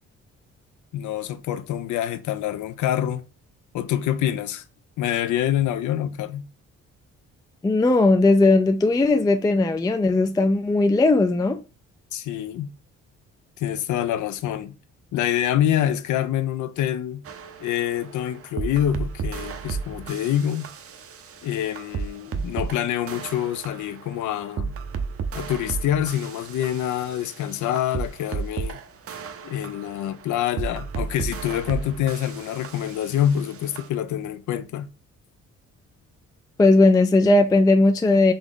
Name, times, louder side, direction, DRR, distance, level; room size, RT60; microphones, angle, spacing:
voice 1, 0.9-3.2 3.7-4.6 5.0-6.5 12.1-12.7 13.6-14.8 15.1-17.2 17.6-20.7 21.4-24.7 25.3-28.8 29.4-34.9, left 11 dB, 75° left, 0.6 m, -26 dB
voice 2, 7.6-11.6 36.6-38.3, left 2 dB, 15° left, 0.4 m, -18 dB
sound 1, 17.2-33.9, right 6 dB, 50° right, 0.7 m, -34 dB
4.0 x 3.4 x 3.7 m
cardioid pair, 90°, 30 cm